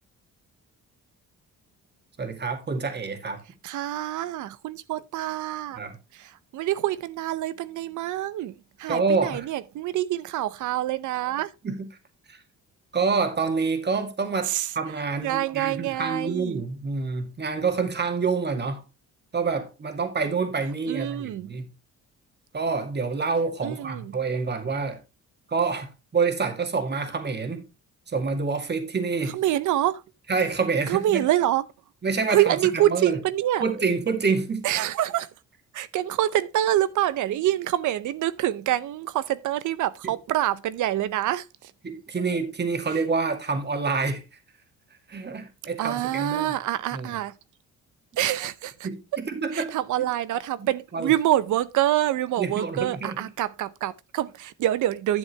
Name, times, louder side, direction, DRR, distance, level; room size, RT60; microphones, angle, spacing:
voice 1, 2.2-3.4 5.8-6.0 8.9-9.5 11.6-11.7 12.3-12.4 12.9-18.8 19.3-21.6 22.5-25.0 25.5-27.7 28.1-29.4 30.3-31.2 32.0-33.2 33.6-34.7 41.8-44.2 45.1-46.5 46.9-47.1 48.8-49.7 50.6-51.1 52.4-53.2, right 4 dB, 35° right, 2.2 m, -27 dB
voice 2, 3.6-5.8 6.1-11.5 14.5-14.7 15.2-16.6 20.9-21.5 23.6-24.2 29.3-30.0 30.9-31.7 32.3-33.6 34.6-35.3 35.7-41.7 45.8-47.3 48.2-48.9 49.5-55.2, right 13 dB, 80° right, 0.8 m, -26 dB
11.0 x 7.5 x 3.3 m
cardioid pair, 90°, 30 cm